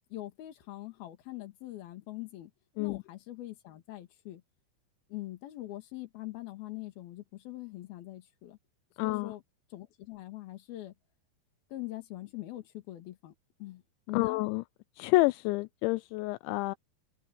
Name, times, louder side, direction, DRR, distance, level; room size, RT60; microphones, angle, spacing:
voice 1, 0.1-2.5 2.8-4.4 5.1-8.6 9.0-9.4 9.7-10.9 11.7-13.3 13.6-13.8 14.1-14.4, left 16 dB, 60° left, 3.5 m, -42 dB
voice 2, 9.0-9.3 14.1-14.6 15.0-16.8, left 22 dB, 85° left, 2.9 m, -28 dB
omnidirectional pair, 5.3 m